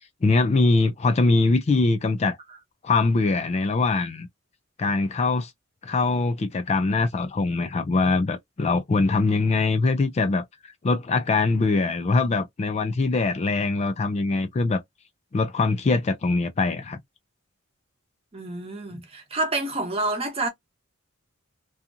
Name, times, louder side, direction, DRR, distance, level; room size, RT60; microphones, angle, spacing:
voice 1, 0.2-2.4 2.8-4.3 4.8-5.5 5.8-10.4 10.8-14.8 15.3-17.0 18.9-19.0, left 3 dB, 30° left, 0.3 m, -22 dB
voice 2, 18.3-20.5, right 2 dB, 30° right, 0.8 m, -28 dB
2.7 x 2.3 x 2.5 m
head